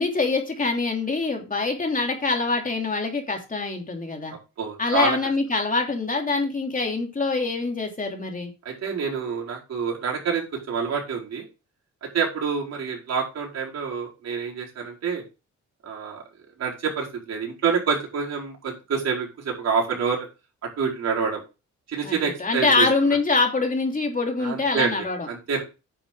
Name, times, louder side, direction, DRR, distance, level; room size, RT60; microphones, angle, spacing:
voice 1, 0.0-4.4 4.8-8.5 22.0-25.3, left 3 dB, 25° left, 2 dB, 2.9 m, -24 dB
voice 2, 4.6-5.2 8.6-11.4 12.0-15.2 15.8-16.2 16.6-20.2 20.8-21.4 21.9-22.9 24.4-25.0 25.3-25.6, right 6 dB, 55° right, -3 dB, 4.8 m, -27 dB
9.7 x 7.0 x 3.7 m, 0.29 s
cardioid pair, 90°, 30 cm